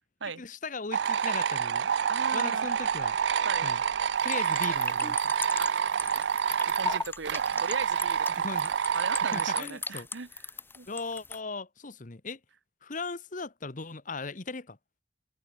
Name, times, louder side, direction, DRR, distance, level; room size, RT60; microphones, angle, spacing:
voice 1, 0.4-1.9 2.3-3.2 3.6-3.8 4.2-5.3 8.4-8.7 9.3-10.1 10.9-12.4 12.8-14.8, left 3 dB, 45° left, 1.2 m, -38 dB
sound 1, 0.9-9.6, right 7 dB, 65° right, 0.4 m, -28 dB
voice 2, 2.1-2.7 3.4-3.7 5.6-6.3 6.7-8.4 8.9-10.3 10.7-10.9, right 5 dB, 85° right, 1.1 m, -38 dB
sound 2, 2.6-9.3, equal, 15° right, 6.2 m, -62 dB
sound 3, 4.2-11.4, left 3 dB, 10° left, 1.0 m, -39 dB
head